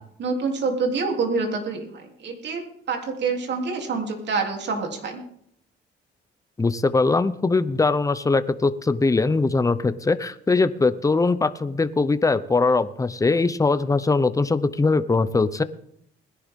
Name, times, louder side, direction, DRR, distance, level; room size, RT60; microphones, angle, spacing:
voice 1, 0.2-5.2, right 4 dB, 60° right, 3 dB, 3.3 m, -27 dB
voice 2, 6.6-15.6, left 3 dB, 15° left, 13 dB, 0.8 m, -21 dB
20.0 x 11.0 x 3.7 m, 0.69 s
cardioid pair, 90°, 20 cm